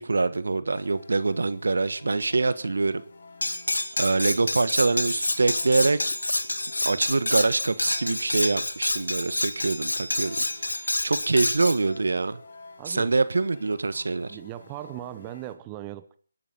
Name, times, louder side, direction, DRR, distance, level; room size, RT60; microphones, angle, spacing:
voice 1, 0.0-3.0 4.0-6.1 6.8-12.4 12.9-14.4, right 3 dB, 70° right, 1.3 m, -25 dB
sound 1, 0.7-15.6, left 3 dB, 60° left, 3.1 m, -50 dB
Cutlery silverware, 3.4-11.8, left 2 dB, 85° left, 2.1 m, -28 dB
voice 2, 12.8-13.2 14.3-16.2, right 15 dB, 20° right, 0.9 m, -38 dB
29.5 x 12.0 x 4.0 m
figure-of-eight pair, 150°, 0 cm